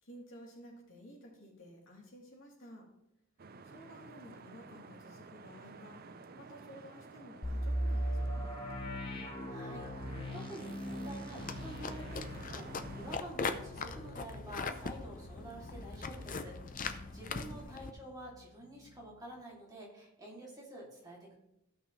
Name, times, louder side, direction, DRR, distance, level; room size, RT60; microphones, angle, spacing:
voice 1, 0.0-2.9 3.6-8.5 17.3-18.0, equal, 60° left, -3 dB, 3.2 m, -54 dB
sound 1, 3.4-13.2, right 4 dB, 45° right, 0.5 m, -51 dB
sound 2, 7.4-17.2 17.5-17.6 18.1-18.3, equal, 20° left, 1.1 m, -40 dB
voice 2, 9.4-21.3, right 1 dB, 15° right, -5 dB, 2.6 m, -49 dB
sound 3, 11.4-17.9, left 4 dB, 40° left, 0.6 m, -41 dB
16.0 x 5.9 x 3.2 m, 0.81 s
head